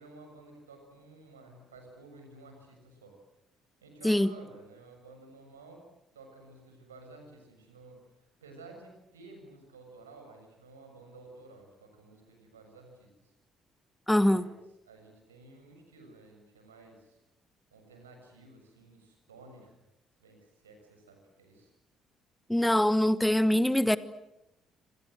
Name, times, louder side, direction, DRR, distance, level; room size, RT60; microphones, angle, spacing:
voice 1, 0.0-3.2 3.8-5.8 6.1-13.3 14.2-14.5 14.9-17.2 17.7-19.7 20.2-21.7, right 3 dB, 85° right, 6.9 m, -53 dB
voice 2, 14.1-14.4 22.5-24.0, left 1 dB, 5° left, 1.4 m, -23 dB
28.0 x 26.0 x 7.8 m
figure-of-eight pair, 45°, 0 cm